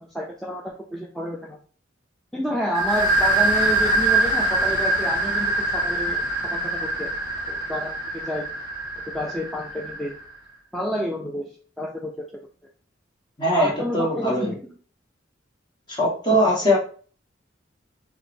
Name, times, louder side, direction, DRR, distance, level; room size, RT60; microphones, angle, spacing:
voice 1, 0.0-1.6 2.3-6.2 6.5-7.1 7.5-8.5 9.1-10.1 10.7-11.4 11.8-12.2 13.5-14.7, equal, ahead, -3 dB, 0.4 m, -29 dB
sound 1, 2.7-10.2, right 2 dB, 20° right, 1.2 m, -24 dB
voice 2, 13.4-14.5 15.9-16.8, equal, 25° left, -4 dB, 1.1 m, -21 dB
4.7 x 2.1 x 2.6 m, 0.42 s
head